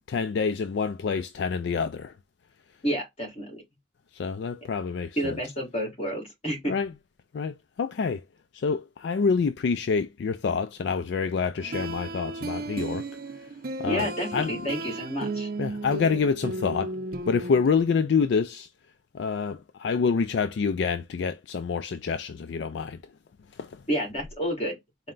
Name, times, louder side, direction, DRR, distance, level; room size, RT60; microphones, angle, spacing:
voice 1, 0.1-2.1 4.1-5.4 6.7-6.9 7.3-8.2 8.5-13.1 13.8-14.1 14.3-14.7 15.6-17.0 17.3-18.7 19.1-23.0 23.5-23.8, left 5 dB, 65° left, 0.3 m, -27 dB
voice 2, 2.8-3.6 5.2-6.7 13.9-15.5 23.9-24.7, equal, 35° left, 2.0 m, -29 dB
sound 1, 11.6-17.7, right 2 dB, 50° right, 0.6 m, -34 dB
4.2 x 2.2 x 3.7 m
head